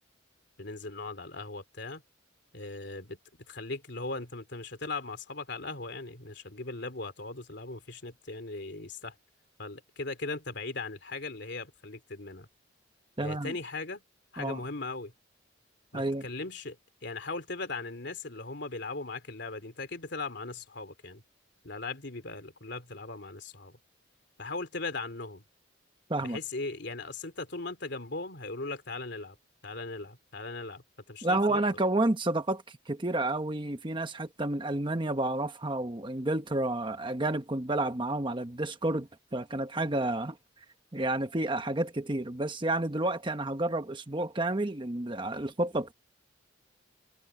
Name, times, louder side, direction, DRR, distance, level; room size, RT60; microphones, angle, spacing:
voice 1, 0.6-2.0 2.5-3.2 3.5-9.1 9.6-12.5 13.2-14.0 14.3-15.1 15.9-16.8 17.0-21.2 21.6-23.8 24.4-25.4 26.2-29.4 29.6-31.6, left 3 dB, 60° left, 3.2 m, -38 dB
voice 2, 13.2-13.5 14.4-14.6 15.9-16.2 26.1-26.4 31.2-40.4 40.9-45.9, right 2 dB, 25° right, 1.1 m, -30 dB
head